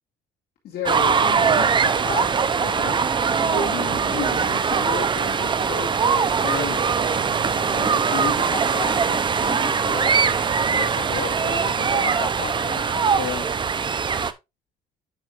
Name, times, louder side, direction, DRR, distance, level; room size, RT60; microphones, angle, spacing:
voice 1, 0.6-3.0 3.4-6.9 7.2-10.1 10.7-13.5, left 6 dB, 65° left, 2.4 m, -33 dB
sound 1, 0.9-14.3, right 6 dB, 30° right, 0.6 m, -21 dB
9.1 x 6.2 x 2.5 m
cardioid pair, 110°, 17 cm